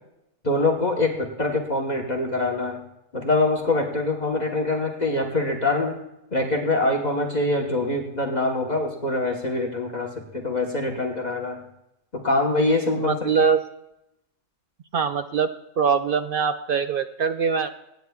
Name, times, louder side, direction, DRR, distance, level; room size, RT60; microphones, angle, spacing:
voice 1, 0.4-2.8 3.1-6.0 6.3-11.6 12.2-13.5, left 2 dB, 35° left, 0 dB, 1.2 m, -24 dB
voice 2, 13.0-13.6 14.9-15.5 15.8-17.7, right 6 dB, 65° right, 9 dB, 0.5 m, -22 dB
23.5 x 9.3 x 2.3 m, 0.88 s
omnidirectional pair, 1.4 m